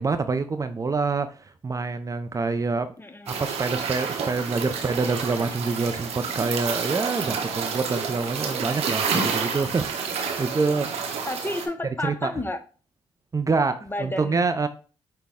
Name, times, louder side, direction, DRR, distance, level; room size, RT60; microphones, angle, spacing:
voice 1, 0.0-2.9 3.3-11.0 12.0-12.3 13.3-14.7, right 4 dB, 30° right, 0.5 m, -26 dB
voice 2, 3.0-3.5 11.3-12.6 13.8-14.7, left 1 dB, 20° left, 0.7 m, -32 dB
sound 1, 3.3-11.7, right 5 dB, 75° right, 0.9 m, -29 dB
5.9 x 2.2 x 3.6 m
supercardioid pair, 55°, 11 cm